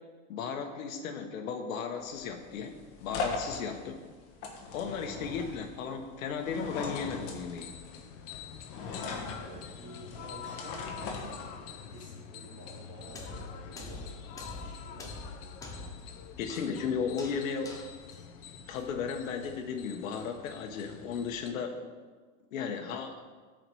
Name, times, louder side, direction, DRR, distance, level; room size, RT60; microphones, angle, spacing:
voice 1, 0.3-4.0 4.7-7.7 16.4-17.8 18.7-21.9 22.5-23.2, left 6 dB, 85° left, 5 dB, 1.3 m, -35 dB
sound 1, 2.0-11.9, left 4 dB, 40° left, 1.4 m, -40 dB
sound 2, 6.8-21.5, left 8 dB, 65° left, 1.0 m, -47 dB
voice 2, 9.0-15.6, right 2 dB, 30° right, -6 dB, 3.2 m, -50 dB
sound 3, 13.0-19.3, left 3 dB, 10° left, 0.5 m, -45 dB
13.5 x 5.0 x 4.7 m, 1.5 s
supercardioid pair, 170°, 40 cm